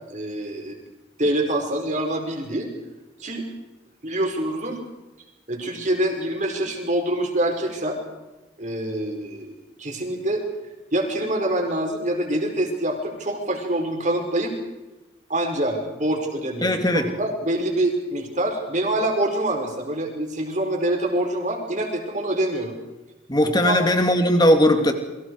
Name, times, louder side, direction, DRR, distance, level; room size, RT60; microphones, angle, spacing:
voice 1, 0.1-0.8 1.2-2.7 3.2-3.5 4.0-4.8 5.5-8.0 8.6-10.4 10.9-14.5 15.3-22.7 23.6-24.1, right 1 dB, 40° right, 2 dB, 5.0 m, -25 dB
voice 2, 16.6-17.1 23.3-24.9, equal, 20° left, 5 dB, 2.6 m, -18 dB
28.5 x 23.0 x 4.8 m, 1.1 s
head